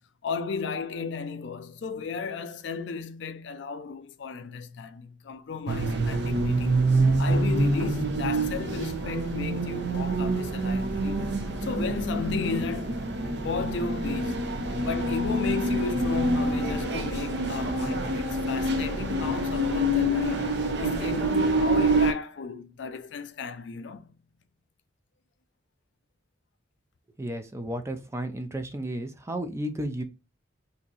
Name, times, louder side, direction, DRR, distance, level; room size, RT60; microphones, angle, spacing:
voice 1, 0.2-6.8 7.2-13.0 13.4-14.5 14.8-24.1, left 5 dB, 65° left, 0.4 m, -34 dB
sound 1, 5.7-22.1, right 1 dB, 60° right, 0.7 m, -26 dB
voice 2, 27.2-30.0, right 1 dB, 15° right, 0.4 m, -33 dB
2.8 x 2.5 x 3.8 m
head